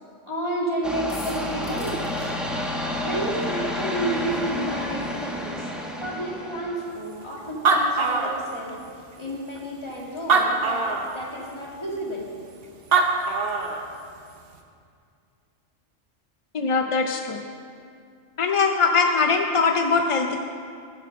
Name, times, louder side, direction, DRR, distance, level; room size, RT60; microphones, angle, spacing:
voice 1, 0.3-2.3 3.0-5.7 6.0-8.8 9.2-12.2, right 1 dB, 25° left, -3 dB, 2.0 m, -31 dB
sound 1, 0.8-6.9, left 1 dB, ahead, 0.9 m, -30 dB
sound 2, 1.1-2.3, left 2 dB, 85° left, 2.4 m, -41 dB
Animal, 7.2-7.3 7.5-8.9 9.6-9.7 10.2-11.2 12.6-12.7 12.9-13.9, right 4 dB, 55° right, 1.0 m, -22 dB
voice 2, 16.5-17.4 18.4-20.4, left 4 dB, 50° left, 5 dB, 0.4 m, -21 dB
11.0 x 7.6 x 6.4 m, 2.3 s
omnidirectional pair, 1.2 m